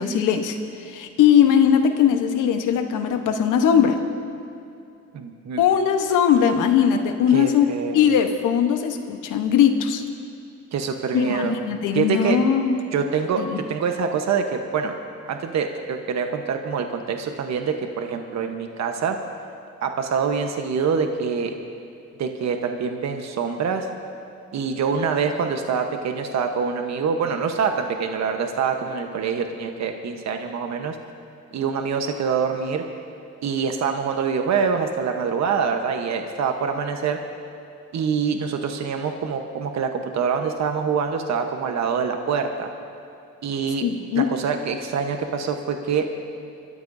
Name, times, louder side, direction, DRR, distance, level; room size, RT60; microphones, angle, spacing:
voice 1, 0.0-4.0 5.6-7.7 7.9-10.0 11.1-12.7 13.4-13.6 43.8-44.2, left 8 dB, 85° left, 6 dB, 1.1 m, -19 dB
voice 2, 5.1-5.6 7.3-8.0 10.7-11.5 11.9-12.4 12.9-14.9 15.3-19.2 19.8-21.5 22.2-23.9 24.5-31.0 31.5-32.8 33.4-37.2 37.9-42.7 43.4-43.9 44.1-46.0, right 6 dB, 65° right, 5 dB, 1.1 m, -25 dB
30.0 x 13.5 x 2.7 m, 2.5 s
cardioid pair, 90°, 30 cm